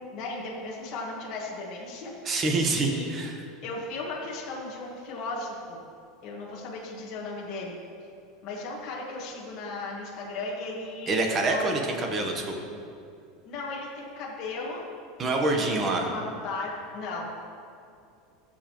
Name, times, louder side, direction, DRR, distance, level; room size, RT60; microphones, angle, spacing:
voice 1, 0.1-2.1 2.7-3.1 3.6-5.8 6.2-7.7 8.4-11.7 13.4-14.8 15.7-17.3, left 3 dB, 35° left, -4 dB, 1.4 m, -36 dB
voice 2, 2.2-3.4 11.1-12.5 15.2-16.1, right 2 dB, 20° right, 2 dB, 1.0 m, -26 dB
18.0 x 7.3 x 3.0 m, 2.5 s
supercardioid pair, 180°, 0 cm